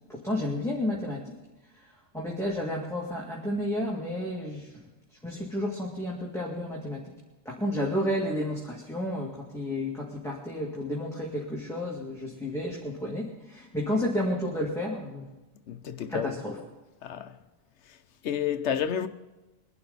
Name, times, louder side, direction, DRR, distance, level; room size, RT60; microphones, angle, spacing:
voice 1, 0.1-1.3 1.8-4.8 5.2-7.1 7.5-15.2 16.1-16.6, left 1 dB, ahead, 2.1 m, -31 dB
voice 2, 15.7-16.4 17.0-17.3 18.2-19.1, left 8 dB, 80° left, 1.0 m, -30 dB
23.0 x 11.5 x 4.0 m
omnidirectional pair, 1.1 m